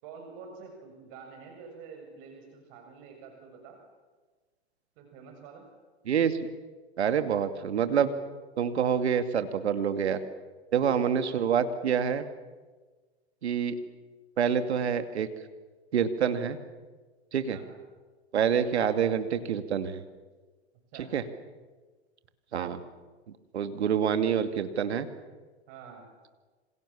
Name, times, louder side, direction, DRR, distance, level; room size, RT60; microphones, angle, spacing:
voice 1, 0.0-3.8 5.0-5.7 11.2-11.3 17.5-17.8 20.9-21.0 25.7-26.1, right 5 dB, 50° right, 3 dB, 6.8 m, -47 dB
voice 2, 6.1-6.4 7.0-8.2 8.6-10.2 10.7-12.3 13.4-13.8 14.4-15.3 15.9-16.6 17.3-17.6 18.3-20.0 20.9-21.2 22.5-22.8 23.3-25.1, right 8 dB, 80° right, 10 dB, 2.5 m, -27 dB
28.0 x 27.0 x 7.2 m, 1.3 s
hypercardioid pair, 110°, 33 cm